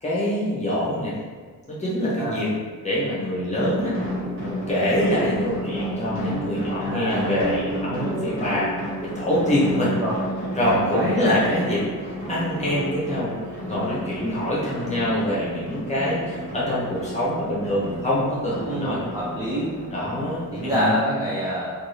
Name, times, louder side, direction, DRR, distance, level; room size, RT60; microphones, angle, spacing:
voice 1, 0.0-1.1 1.7-2.5 2.8-4.0 4.7-8.7 9.0-9.9 10.5-11.8 12.3-13.3 13.7-19.0 19.9-21.2, left 1 dB, 20° left, -7 dB, 0.7 m, -25 dB
sound 1, 3.5-20.8, equal, 35° right, 1.0 m, -31 dB
voice 2, 6.8-7.3 10.0-10.2 10.9-11.3 18.7-19.7 20.5-21.7, equal, 10° right, -8 dB, 0.3 m, -26 dB
2.5 x 2.4 x 3.1 m, 1.5 s
wide cardioid pair, 175°, 35 cm